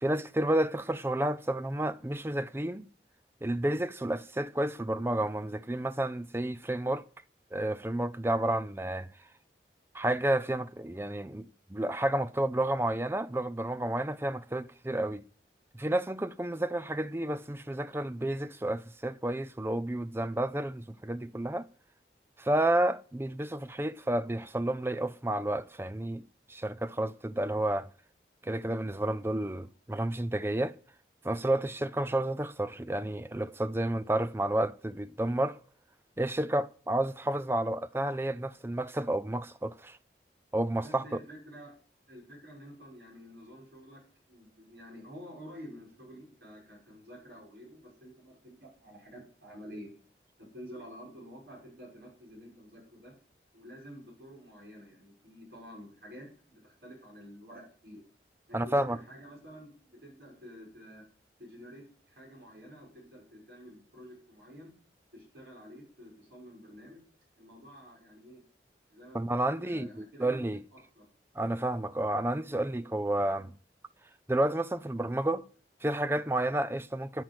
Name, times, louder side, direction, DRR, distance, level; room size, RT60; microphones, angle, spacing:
voice 1, 0.0-2.9 3.4-7.0 7.5-9.1 9.9-15.2 15.7-21.7 22.4-26.2 26.5-27.9 28.4-30.8 31.2-35.6 36.2-40.0 40.5-41.2 58.5-59.0 69.1-70.6 71.4-73.5 74.3-75.5 75.8-77.2, right 1 dB, 15° right, 0.5 m, -31 dB
voice 2, 40.8-41.7 42.1-49.9 50.4-53.1 53.5-58.0 58.5-61.0 61.4-64.7 65.1-67.0 67.4-68.4 68.9-70.4 70.7-71.1, equal, 75° right, 6.2 m, -49 dB
10.5 x 9.0 x 7.8 m
head